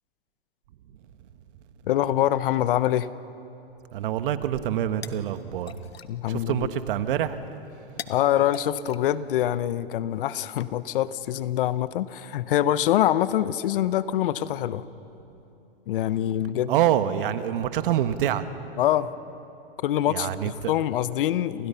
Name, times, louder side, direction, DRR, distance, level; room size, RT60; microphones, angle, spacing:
voice 1, 1.9-3.1 6.1-6.7 8.1-14.8 15.9-16.7 18.8-19.1 19.8-21.7, left 12 dB, 60° left, 15 dB, 1.0 m, -25 dB
voice 2, 3.9-5.7 6.3-7.4 16.7-18.5 20.1-20.7, right 11 dB, 60° right, 11 dB, 1.6 m, -26 dB
sound 1, 4.6-9.9, left 8 dB, 85° left, 1.3 m, -45 dB
29.5 x 27.5 x 5.8 m, 3.0 s
hypercardioid pair, 120°, 30 cm